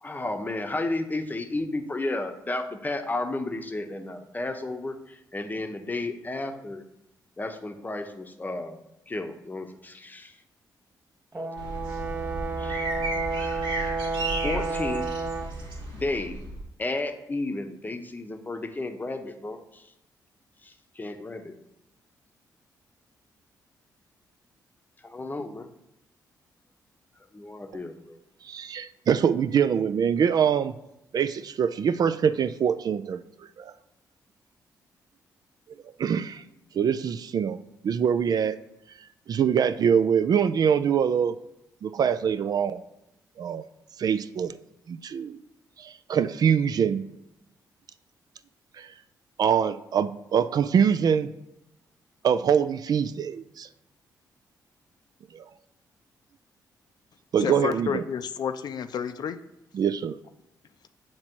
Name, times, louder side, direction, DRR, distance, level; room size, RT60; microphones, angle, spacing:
voice 1, 0.0-6.8 7.4-8.8 9.1-10.3 12.6-12.9 14.4-15.0 15.9-16.4 16.8-19.8 20.6-21.5 25.0-25.7 27.3-28.2, left 2 dB, 20° left, 6 dB, 0.8 m, -32 dB
Brass instrument, 11.3-15.6, right 4 dB, 25° right, 0.7 m, -31 dB
sound 1, 11.6-16.6, right 2 dB, 90° right, 1.5 m, -34 dB
voice 2, 28.4-30.7 31.1-33.2 33.6-33.7 36.0-36.4 36.7-37.6 37.8-38.6 39.3-41.3 41.8-42.8 43.4-43.6 44.0-44.6 44.9-45.4 45.8-47.0 48.8-48.9 49.4-51.3 52.2-53.7 55.3-55.4 57.3-58.0 59.7-60.2, right 7 dB, 55° right, 12 dB, 0.3 m, -24 dB
voice 3, 57.4-59.4, left 7 dB, 60° left, 9 dB, 0.4 m, -30 dB
7.5 x 2.9 x 4.5 m, 0.87 s
cardioid pair, 65°, 8 cm